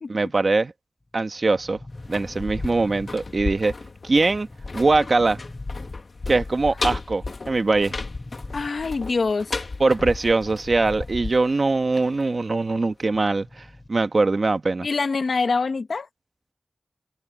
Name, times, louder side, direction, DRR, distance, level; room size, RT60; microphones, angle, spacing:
voice 1, 0.1-0.7 1.1-1.8 2.1-3.7 4.0-4.5 4.7-5.4 6.3-8.0 9.8-14.9, right 3 dB, 60° right, 1.3 m, -22 dB
sound 1, 1.0-3.9 4.3-6.4 7.3-9.1 10.3-11.3 11.6-11.7 13.3-14.1, left 2 dB, 30° left, 4.6 m, -44 dB
sound 2, 1.9-12.7 13.0-13.1, left 3 dB, 65° left, 1.9 m, -34 dB
voice 2, 8.5-9.6 14.8-16.1, left 4 dB, 85° left, 1.8 m, -25 dB
wide cardioid pair, 75°, 0 cm